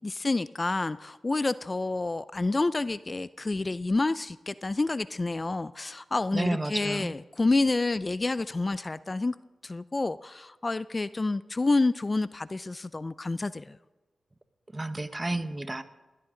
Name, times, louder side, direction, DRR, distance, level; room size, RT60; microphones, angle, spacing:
voice 1, 0.0-9.3 9.6-13.8, left 3 dB, 30° left, 15 dB, 0.4 m, -28 dB
voice 2, 6.3-7.2 14.7-15.8, right 2 dB, 25° right, 10 dB, 1.1 m, -31 dB
20.5 x 16.5 x 3.9 m, 1.1 s
cardioid pair, 60°, 0 cm